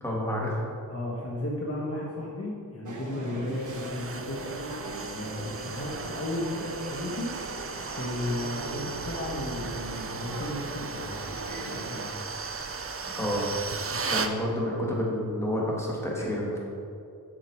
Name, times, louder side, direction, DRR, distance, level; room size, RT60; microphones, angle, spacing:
voice 1, 0.0-0.6 13.1-13.5 13.9-16.6, left 1 dB, 5° left, -4 dB, 2.2 m, -29 dB
voice 2, 0.9-4.4 5.1-7.3 7.9-11.3 11.6-12.2 14.1-14.2 16.2-16.4, left 1 dB, 40° left, -4 dB, 1.3 m, -34 dB
sound 1, 2.9-12.1, right 1 dB, 50° right, 1.1 m, -40 dB
sound 2, 3.5-14.4, right 4 dB, 35° right, 0.6 m, -36 dB
7.6 x 6.8 x 4.7 m, 2.5 s
cardioid pair, 55°, 38 cm